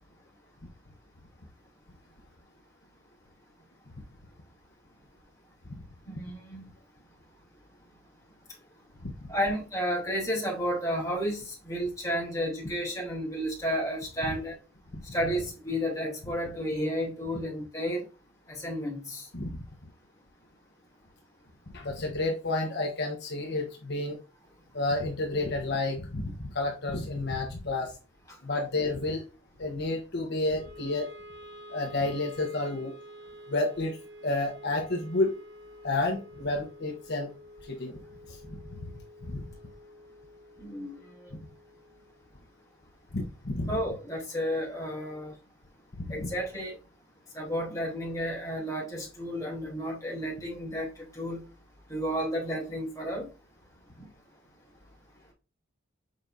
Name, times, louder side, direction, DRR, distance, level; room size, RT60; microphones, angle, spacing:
voice 1, 6.0-6.7 9.3-14.6 15.1-18.0 18.5-19.2 40.6-41.0 43.7-45.3 46.1-46.8 47.3-51.4 51.9-53.3 54.0-54.1, equal, 15° left, 3.1 m, -32 dB
voice 2, 21.7-24.2 24.7-27.9 28.4-29.2 29.6-31.1 31.7-32.9 33.5-34.0 34.2-35.4 35.8-37.3 37.7-37.9 39.2-39.4 41.3-41.4 43.1-43.8 46.0-46.3, left 2 dB, 55° left, 1.3 m, -30 dB
Wind instrument woodwind instrument, 30.5-42.8, equal, 55° right, 1.0 m, -50 dB
6.9 x 5.3 x 2.7 m
head